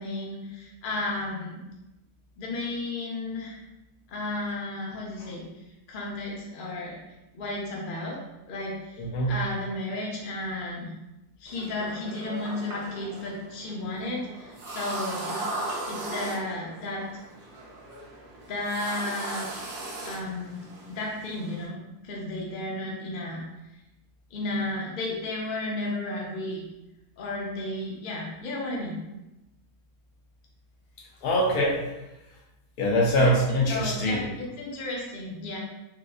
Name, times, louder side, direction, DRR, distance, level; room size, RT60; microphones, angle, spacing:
voice 1, 0.0-1.6 2.4-3.6 4.1-5.5 5.9-7.0 7.3-8.2 8.5-9.0 9.3-10.9 11.4-15.5 15.9-17.0 18.5-19.5 20.0-23.4 24.3-26.6 27.2-29.0 33.7-35.6, left 2 dB, 50° left, -2 dB, 0.6 m, -33 dB
voice 2, 9.0-9.3 31.2-31.8 32.8-34.3, equal, 80° left, -2 dB, 1.2 m, -23 dB
sound 1, 11.5-21.7, right 2 dB, 55° right, 0.9 m, -38 dB
3.8 x 2.5 x 2.3 m, 0.96 s
omnidirectional pair, 1.6 m